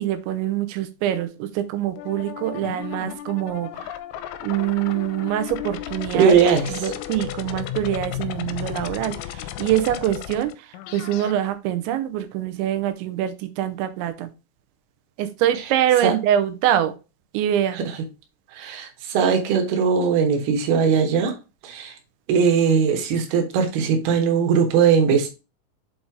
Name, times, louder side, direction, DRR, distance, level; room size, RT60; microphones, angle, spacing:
voice 1, 0.0-3.9 4.4-6.4 6.7-14.3 15.2-16.9 17.3-17.8, right 11 dB, 85° right, 3.2 m, -24 dB
sound 1, 2.0-11.3, left 12 dB, 85° left, 2.9 m, -34 dB
voice 2, 6.1-6.9 16.0-16.1 17.8-17.9 18.5-21.4 21.6-21.9 22.3-25.3, right 6 dB, 65° right, 3.0 m, -19 dB
7.5 x 4.0 x 3.6 m
omnidirectional pair, 5.3 m